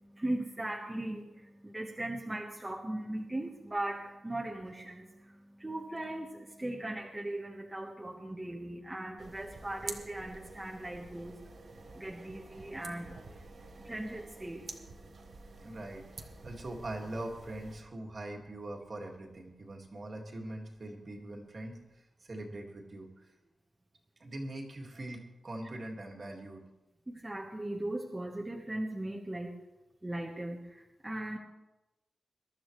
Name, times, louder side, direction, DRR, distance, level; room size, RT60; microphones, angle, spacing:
voice 1, 0.0-15.7 27.1-29.6 30.0-31.4, right 1 dB, 15° right, -1 dB, 1.2 m, -39 dB
sound 1, 9.2-17.8, right 3 dB, 55° right, 1.2 m, -49 dB
voice 2, 15.6-23.3 24.2-26.6, right 1 dB, 40° right, 1 dB, 2.0 m, -42 dB
22.0 x 12.5 x 3.2 m, 1.0 s
wide cardioid pair, 160°, 0 cm